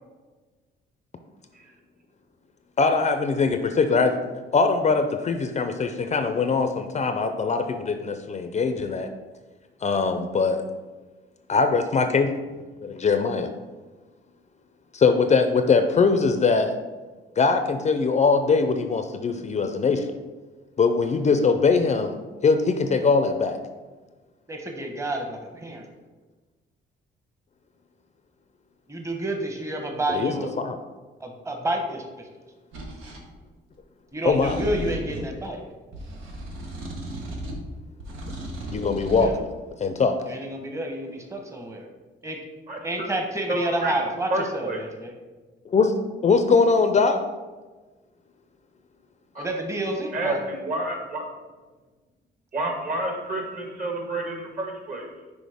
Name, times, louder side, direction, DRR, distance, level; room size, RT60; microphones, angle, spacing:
voice 1, 2.8-4.2 4.5-9.1 9.8-10.6 11.5-12.3 12.8-13.5 14.9-16.7 17.4-20.2 20.8-22.2 22.4-23.6 30.1-30.8 34.2-34.6 38.7-39.5 39.8-40.2 45.7-45.9 46.2-47.2, left 4 dB, 35° left, 8 dB, 0.5 m, -21 dB
voice 2, 24.5-25.9 28.9-30.5 31.2-32.3 34.1-35.6 39.2-39.4 40.3-41.8 42.2-42.4 42.8-45.1 49.4-50.4, right 1 dB, 15° right, 2 dB, 1.0 m, -29 dB
sound 1, 32.7-33.2 34.2-35.3 35.9-37.7 38.0-39.3, right 1 dB, 90° right, 1.1 m, -35 dB
voice 3, 42.7-43.1 43.5-44.0 44.3-44.8 49.3-49.5 50.1-51.2 52.5-55.1, right 2 dB, 45° right, 1 dB, 1.6 m, -29 dB
6.2 x 4.8 x 3.5 m, 1.3 s
cardioid pair, 90°, 20 cm